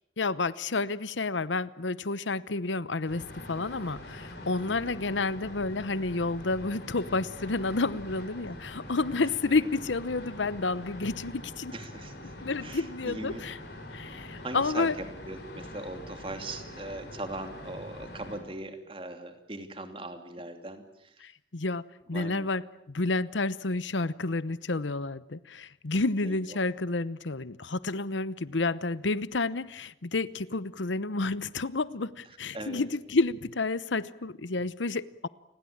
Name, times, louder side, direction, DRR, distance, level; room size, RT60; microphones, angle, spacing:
voice 1, 0.2-3.2 3.5-11.7 12.4-13.6 13.9-14.9 21.2-21.8 22.1-35.3, left 3 dB, 80° left, 17 dB, 0.9 m, -30 dB
sound 1, 3.1-18.4, left 1 dB, 60° left, 7.1 m, -44 dB
voice 2, 11.7-12.1 12.6-13.4 14.4-14.9 15.3-20.8 22.1-22.5 26.2-26.4 32.5-32.9, right 1 dB, 30° right, 7 dB, 2.9 m, -39 dB
29.0 x 21.0 x 8.7 m, 0.79 s
head